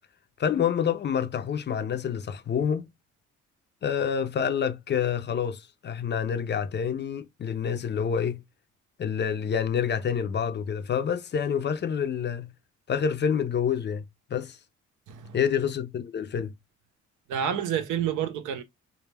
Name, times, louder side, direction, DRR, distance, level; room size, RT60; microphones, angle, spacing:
voice 1, 0.4-2.9 3.8-8.4 9.0-12.5 12.9-14.0 14.3-14.6 15.3-16.5, left 7 dB, 35° left, 0.4 m, -27 dB
voice 2, 15.1-15.4 17.3-18.6, right 9 dB, 85° right, 0.6 m, -29 dB
2.2 x 2.1 x 3.2 m
cardioid pair, 90°, 30 cm